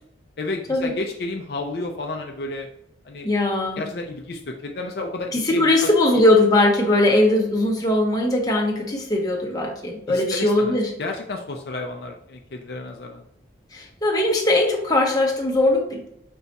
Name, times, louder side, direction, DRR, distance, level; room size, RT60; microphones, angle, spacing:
voice 1, 0.4-2.7 3.1-3.3 3.8-5.9 10.1-13.2, left 2 dB, 55° left, 2 dB, 0.5 m, -31 dB
voice 2, 3.2-3.8 5.3-10.9 13.7-16.1, left 2 dB, 20° left, 0 dB, 0.8 m, -20 dB
5.3 x 2.3 x 4.0 m, 0.75 s
head